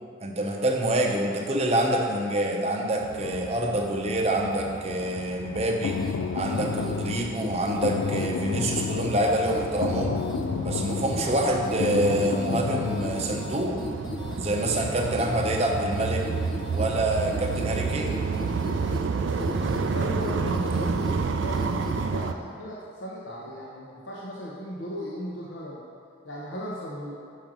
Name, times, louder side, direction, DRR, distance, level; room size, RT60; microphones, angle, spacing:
voice 1, 0.2-6.0 6.3-10.2 10.6-13.8 14.3-16.2 16.7-18.1, right 1 dB, 30° right, 1 dB, 0.7 m, -26 dB
sound 1, 3.0-22.3, right 4 dB, 65° right, 0.4 m, -31 dB
sound 2, 5.4-13.2, left 6 dB, 90° left, 0.4 m, -31 dB
sound 3, 5.9-22.1, left 2 dB, 20° left, 0.6 m, -38 dB
voice 2, 14.8-15.1 19.2-25.8 26.2-27.2, equal, 60° left, -5 dB, 0.9 m, -37 dB
6.3 x 5.3 x 6.1 m, 2.3 s
head